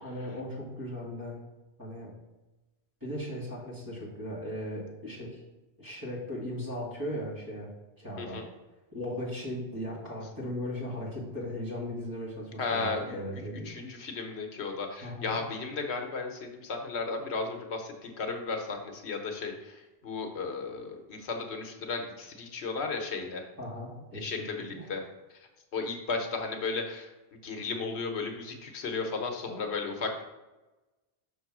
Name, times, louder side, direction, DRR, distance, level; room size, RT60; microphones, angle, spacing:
voice 1, 0.0-1.4 1.8-2.1 3.0-5.4 5.8-7.7 8.0-8.4 8.9-13.7 15.0-15.4 23.6-24.3 24.7-24.9, left 1 dB, 20° right, -6 dB, 2.1 m, -37 dB
voice 2, 12.6-13.2 13.7-19.7 20.0-23.4 24.1-25.0 25.7-27.1 27.4-30.2, left 4 dB, 80° left, 3 dB, 1.1 m, -34 dB
6.0 x 3.9 x 6.0 m, 1.1 s
omnidirectional pair, 1.1 m